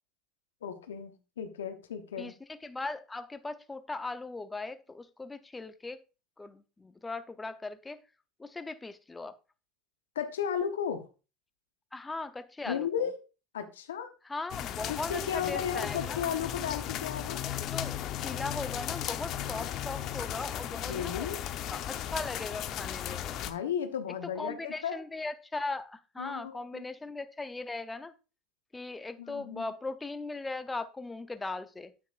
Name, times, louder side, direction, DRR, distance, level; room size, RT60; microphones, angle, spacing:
voice 1, 0.6-2.3 10.1-11.0 12.7-13.2 13.5-14.1 14.9-17.4 20.8-21.4 23.4-25.0 26.2-26.8 29.2-29.6, left 8 dB, 85° left, 0.9 m, -34 dB
voice 2, 2.2-6.0 6.4-8.0 8.4-9.4 11.9-13.1 14.2-16.2 17.4-21.3 21.7-23.4 24.4-28.1 28.7-31.9, left 3 dB, 15° left, 0.7 m, -39 dB
sound 1, 14.5-23.5, left 11 dB, 55° left, 0.8 m, -36 dB
9.2 x 8.1 x 2.5 m
hypercardioid pair, 80°, 0 cm